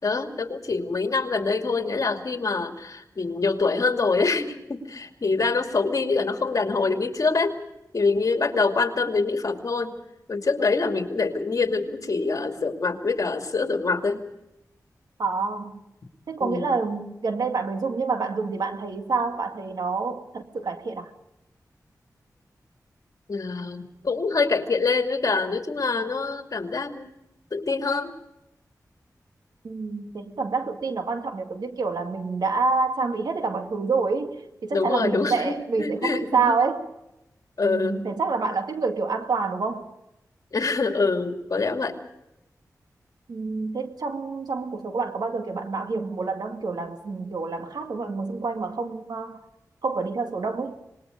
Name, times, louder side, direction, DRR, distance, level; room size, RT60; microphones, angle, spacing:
voice 1, 0.0-7.6 7.9-10.0 10.3-14.2 16.4-16.8 23.3-27.1 27.5-28.1 34.7-36.6 37.6-38.1 40.5-42.0, left 4 dB, 60° left, 2.5 m, -25 dB
voice 2, 15.2-15.8 16.3-21.1 29.6-36.8 37.6-39.9 43.3-49.4 49.8-50.8, right 4 dB, 85° right, 2.2 m, -27 dB
26.0 x 20.5 x 5.3 m
wide cardioid pair, 80°, 7 cm